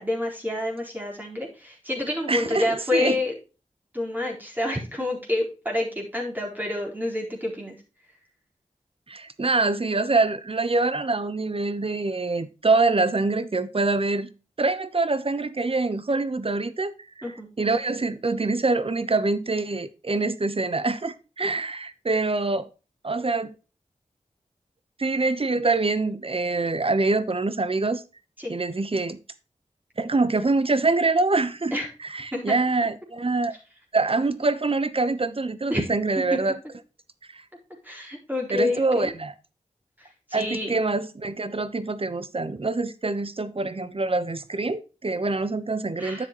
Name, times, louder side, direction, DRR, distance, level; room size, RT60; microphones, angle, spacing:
voice 1, 0.0-3.3 3.9-7.8 17.2-17.5 28.4-28.5 31.7-31.9 32.3-32.5 35.7-35.9 36.3-36.5 37.8-39.1 40.3-40.8 46.0-46.3, left 2 dB, 15° right, 4.2 m, -28 dB
voice 2, 2.3-3.2 9.1-14.3 14.6-17.3 17.6-22.7 23.0-23.5 25.0-28.0 28.5-29.2 30.0-31.7 32.0-33.5 33.9-36.6 37.3-37.4 38.5-39.3 40.3-46.3, right 3 dB, 45° right, 1.0 m, -25 dB
10.5 x 7.2 x 3.0 m
wide cardioid pair, 60°, 14 cm